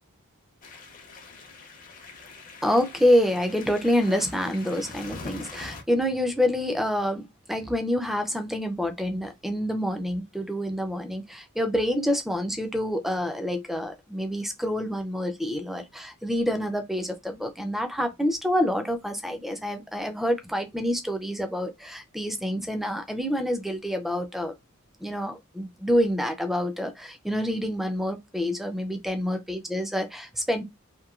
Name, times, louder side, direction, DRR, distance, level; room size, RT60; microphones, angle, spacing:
sound 1, 0.6-5.8, left 3 dB, 40° left, 0.7 m, -43 dB
voice 1, 2.6-24.5 25.0-30.6, equal, ahead, 0.5 m, -27 dB
3.0 x 2.7 x 2.4 m
head